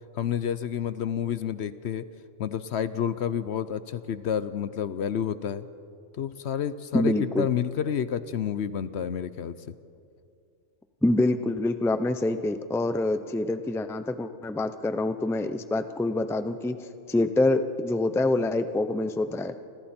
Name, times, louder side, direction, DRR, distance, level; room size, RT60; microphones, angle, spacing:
voice 1, 0.2-2.0 2.4-5.7 6.2-9.5, left 8 dB, 60° left, 14 dB, 0.9 m, -29 dB
voice 2, 6.9-7.5 11.0-16.8 17.1-19.5, left 2 dB, 5° left, 10 dB, 0.5 m, -26 dB
29.0 x 25.0 x 4.4 m, 2.5 s
omnidirectional pair, 1.3 m